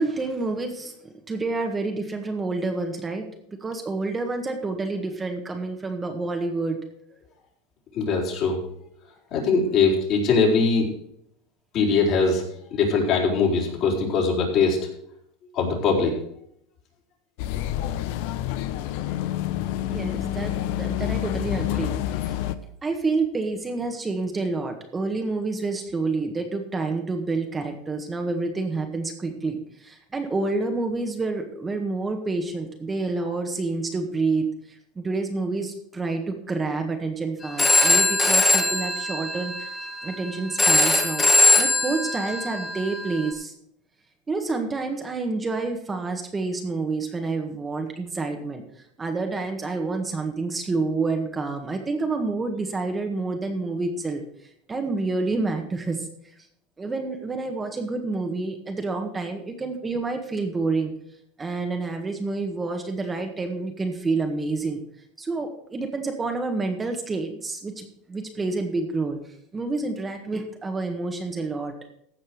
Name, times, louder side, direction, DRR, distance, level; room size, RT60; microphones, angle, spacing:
voice 1, 0.0-6.8 19.8-21.9 22.2-22.3 22.8-39.8 40.0-41.3 41.5-43.5 44.3-48.6 49.0-54.2 54.7-56.1 56.8-60.9 61.4-64.8 65.2-69.2 69.5-71.7, right 3 dB, 20° right, 4 dB, 1.7 m, -28 dB
voice 2, 7.9-8.6 9.3-10.9 11.7-12.4 12.7-14.8 15.5-16.2, left 4 dB, 50° left, -1 dB, 4.5 m, -21 dB
sound 1, 17.4-22.6, left 12 dB, 70° left, 0.8 m, -28 dB
Telephone, 37.4-43.3, left 2 dB, 15° left, 2.1 m, -21 dB
15.5 x 5.4 x 6.5 m, 0.71 s
supercardioid pair, 110°, 0 cm